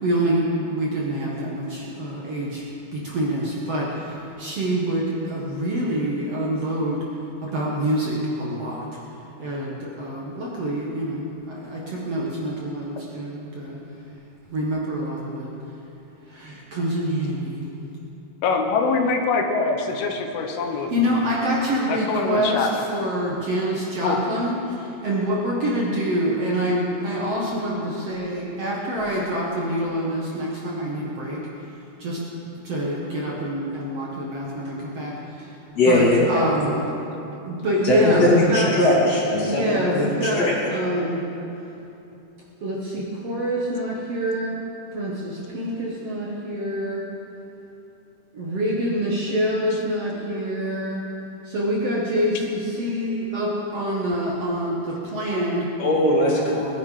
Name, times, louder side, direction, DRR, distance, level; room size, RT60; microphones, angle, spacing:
voice 1, 0.0-2.6 2.9-7.0 7.4-9.0 9.4-13.8 14.5-15.5 16.3-17.6 20.9-31.5 32.0-32.2 32.6-35.6 35.8-36.8 37.5-38.7 39.4-41.3 42.6-44.6 44.9-47.1 48.3-51.0 51.4-55.7, equal, 55° right, -4 dB, 2.0 m, -26 dB
voice 2, 18.4-20.9 21.9-22.7 24.0-24.2, left 4 dB, 85° left, 3 dB, 3.0 m, -23 dB
voice 3, 35.7-36.5 37.8-38.2 38.5-40.5 55.8-56.8, left 1 dB, 45° left, -4 dB, 3.3 m, -20 dB
20.0 x 10.5 x 4.9 m, 3.0 s
omnidirectional pair, 4.3 m